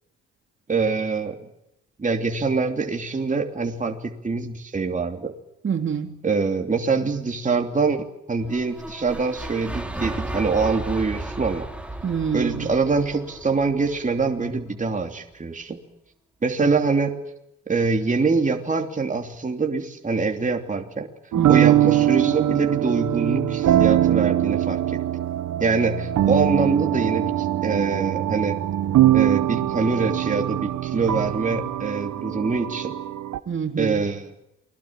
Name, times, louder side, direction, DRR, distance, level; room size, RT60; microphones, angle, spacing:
voice 1, 0.7-1.4 2.0-5.3 6.2-11.7 12.3-15.8 16.4-17.2 17.7-21.1 21.5-25.0 25.6-28.6 29.1-32.9 33.8-34.3, right 4 dB, 25° right, 3.0 m, -24 dB
voice 2, 5.6-6.1 12.0-12.7 21.4-21.7 33.5-34.0, right 7 dB, 40° right, 3.2 m, -26 dB
sound 1, 8.4-14.6, right 2 dB, 5° right, 4.1 m, -34 dB
sound 2, 21.3-33.4, right 12 dB, 70° right, 1.4 m, -22 dB
29.5 x 21.5 x 7.6 m
cardioid pair, 90°, 30 cm